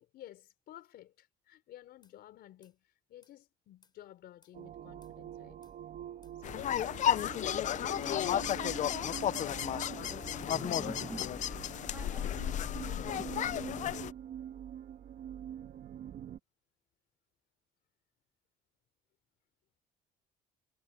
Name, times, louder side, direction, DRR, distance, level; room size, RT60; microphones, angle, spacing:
voice 1, 0.0-5.6 6.4-9.0 11.4-11.7 12.0-13.3, left 13 dB, 70° left, 4.6 m, -54 dB
sound 1, 2.0-2.2 2.6-2.8 3.2-3.4 3.8-4.0 4.4-4.6 5.0-5.2 5.6-5.8 6.2-6.4 6.8-7.0 7.4-7.6 8.0-8.2 8.6-8.8 9.2-9.4 9.8-10.0 10.4-10.6 11.0-11.2, left 4 dB, 25° left, 5.2 m, -67 dB
sound 2, 4.5-16.4, right 10 dB, 60° right, 1.5 m, -45 dB
sound 3, 6.4-14.1, left 10 dB, 45° left, 0.5 m, -33 dB
voice 2, 8.1-8.5 9.5-9.6 9.9-11.6 11.9-12.4, right 2 dB, 10° right, 1.1 m, -47 dB
cardioid pair, 110°, 17 cm